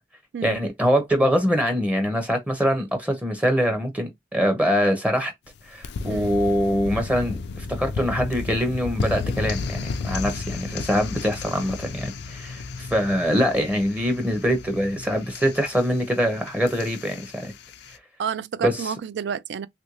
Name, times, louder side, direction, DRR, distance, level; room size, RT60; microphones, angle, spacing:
voice 1, 0.4-5.3 5.7-17.5 18.6-18.9, equal, 10° right, 0.6 m, -24 dB
sound 1, 5.5-18.0, left 4 dB, 65° left, 0.4 m, -33 dB
voice 2, 18.2-19.7, right 7 dB, 70° right, 0.3 m, -30 dB
3.1 x 2.5 x 3.0 m
head